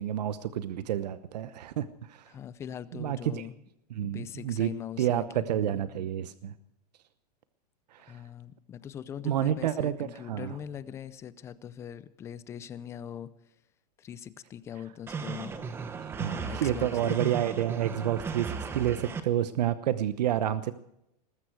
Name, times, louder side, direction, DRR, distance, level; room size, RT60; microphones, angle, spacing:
voice 1, 0.0-2.2 3.0-3.4 4.0-4.7 5.0-6.5 7.9-8.2 9.2-10.0 10.3-10.5 16.0-20.7, right 11 dB, 75° right, 13 dB, 1.0 m, -29 dB
voice 2, 2.3-3.6 4.0-5.8 8.1-13.3 14.0-15.7 16.3-17.4, left 9 dB, 15° left, 16 dB, 0.5 m, -41 dB
sound 1, 15.1-19.2, right 5 dB, 10° right, 1.0 m, -36 dB
20.5 x 14.5 x 4.7 m, 0.80 s
supercardioid pair, 170°, 21 cm